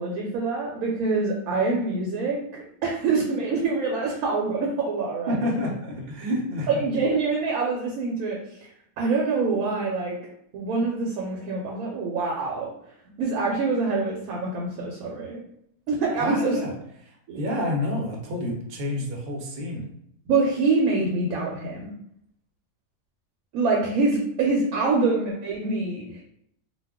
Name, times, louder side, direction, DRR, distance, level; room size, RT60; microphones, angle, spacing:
voice 1, 0.0-5.5 6.7-8.4 9.0-10.2 10.5-12.7 13.2-15.4 15.9-16.6 17.3-17.5 20.3-21.9 23.5-26.2, right 3 dB, 80° right, -1 dB, 1.0 m, -25 dB
voice 2, 5.3-6.8 16.2-16.7 17.0-19.8, left 1 dB, 55° right, 0 dB, 0.8 m, -29 dB
2.4 x 2.3 x 3.5 m, 0.72 s
omnidirectional pair, 1.5 m